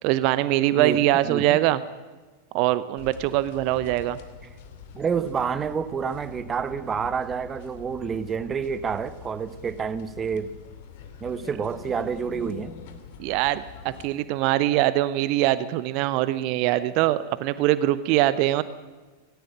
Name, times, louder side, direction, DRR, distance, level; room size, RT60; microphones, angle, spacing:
voice 1, 0.0-1.8 2.5-4.2 13.2-18.6, right 15 dB, 45° right, 0.8 m, -23 dB
voice 2, 0.7-1.6 4.9-10.5 11.2-12.7, right 6 dB, 20° right, 1.1 m, -29 dB
sound 1, 3.0-14.1, left 6 dB, 50° left, 2.7 m, -44 dB
18.0 x 17.5 x 8.8 m
figure-of-eight pair, 90°, 0 cm